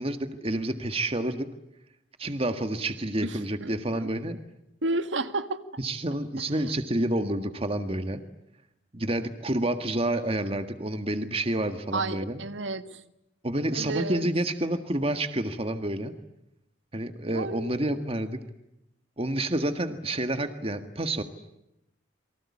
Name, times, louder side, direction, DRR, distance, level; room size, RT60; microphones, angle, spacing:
voice 1, 0.0-1.5 2.2-4.4 5.8-8.2 8.9-12.4 13.4-16.1 16.9-18.4 19.2-21.2, right 1 dB, 30° right, 8 dB, 1.7 m, -29 dB
voice 2, 3.2-4.4 4.8-5.6 11.9-13.0 13.7-14.3 17.3-18.0, right 2 dB, 85° right, 11 dB, 1.6 m, -32 dB
28.5 x 24.0 x 8.6 m, 0.84 s
head